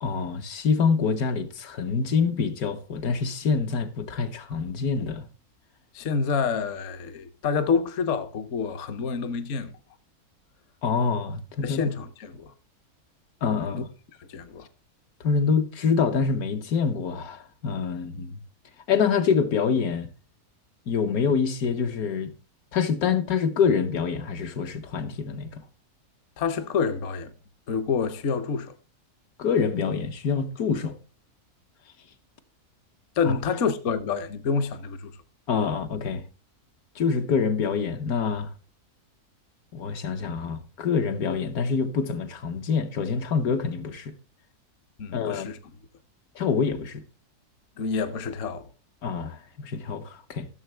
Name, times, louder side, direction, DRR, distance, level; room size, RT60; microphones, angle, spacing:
voice 1, 0.0-5.3 10.8-11.8 13.4-13.9 15.2-18.3 18.9-20.1 20.9-22.3 22.7-25.6 29.4-31.0 33.2-33.3 35.5-36.2 36.9-38.5 39.7-44.1 45.1-45.5 46.4-47.0 49.0-50.5, left 5 dB, 75° left, 1.4 m, -26 dB
voice 2, 5.9-9.7 11.6-12.5 13.7-13.8 14.2-14.7 26.4-27.3 27.7-28.7 33.2-35.1 45.0-45.6 47.8-48.7, left 5 dB, 60° left, 1.0 m, -28 dB
15.0 x 6.7 x 3.2 m
omnidirectional pair, 1.6 m